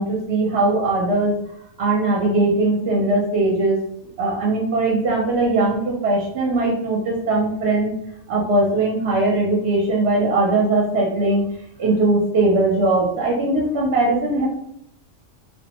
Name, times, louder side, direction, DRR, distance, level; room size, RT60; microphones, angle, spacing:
voice 1, 0.0-1.3 1.8-3.8 4.2-7.9 8.3-11.4 11.8-14.5, right 2 dB, 60° right, -3 dB, 0.8 m, -20 dB
2.4 x 2.2 x 2.8 m, 0.74 s
omnidirectional pair, 1.4 m